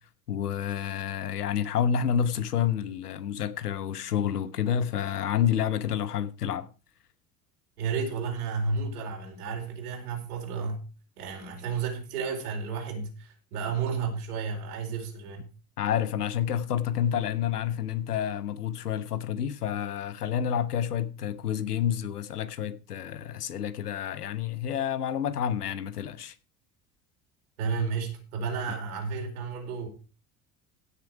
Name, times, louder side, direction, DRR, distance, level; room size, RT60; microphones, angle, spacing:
voice 1, 0.3-6.7 15.8-26.3, left 9 dB, 85° left, 1.2 m, -29 dB
voice 2, 7.8-10.8 11.2-15.4 27.6-29.9, right 5 dB, 75° right, 4.5 m, -32 dB
16.5 x 6.9 x 4.8 m
hypercardioid pair, 70°, 45 cm